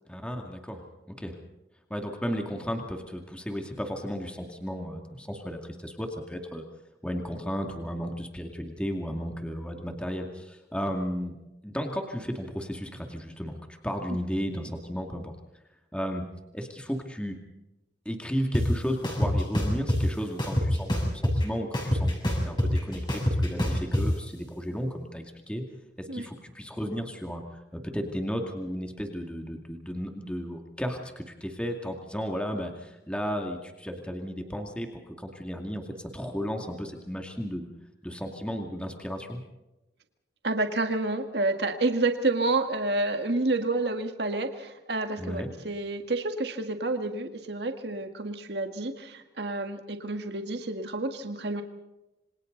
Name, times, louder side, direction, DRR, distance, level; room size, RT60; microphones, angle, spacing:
voice 1, 0.1-1.4 1.9-6.6 7.0-11.4 11.6-13.6 13.8-15.3 15.9-16.2 16.5-17.4 18.1-25.6 26.0-27.4 27.7-37.7 38.0-39.4 45.2-45.5, equal, 5° left, 3 dB, 2.4 m, -34 dB
sound 1, 18.5-18.6 19.0-20.0 20.4-21.4 21.7-24.0, equal, 25° left, 6.8 m, -25 dB
voice 2, 40.4-51.6, right 2 dB, 65° right, 6 dB, 1.8 m, -29 dB
27.5 x 25.5 x 4.0 m, 0.96 s
head